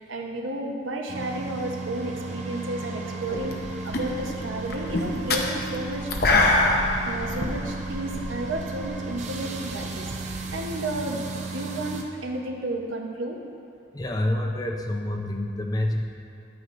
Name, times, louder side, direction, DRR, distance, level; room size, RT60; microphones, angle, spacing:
voice 1, 0.0-6.1 7.0-13.4, right 1 dB, 90° right, 1 dB, 1.0 m, -32 dB
sound 1, 1.1-12.0, right 3 dB, 35° right, 0.6 m, -35 dB
sound 2, 3.3-3.6 3.9-8.9, left 2 dB, 50° left, 0.7 m, -24 dB
voice 2, 13.9-16.0, left 1 dB, 20° left, 2 dB, 0.5 m, -27 dB
10.5 x 9.3 x 2.6 m, 2.6 s
head